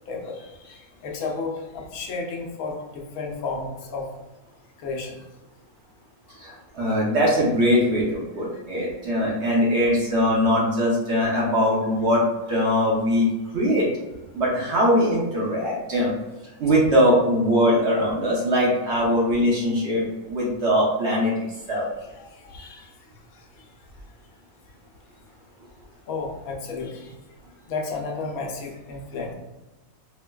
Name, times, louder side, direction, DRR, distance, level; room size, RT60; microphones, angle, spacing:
voice 1, 0.1-4.1 4.8-5.2 6.8-7.0 21.7-21.8 22.2-22.9 26.1-27.1 27.7-29.3, left 4 dB, 85° left, 1 dB, 1.1 m, -33 dB
voice 2, 6.4-12.2 12.5-13.3 13.5-13.9 14.3-16.1 16.6-21.3 21.7-21.9, equal, 55° right, -4 dB, 1.0 m, -21 dB
4.5 x 2.2 x 2.2 m, 1.1 s
omnidirectional pair, 1.5 m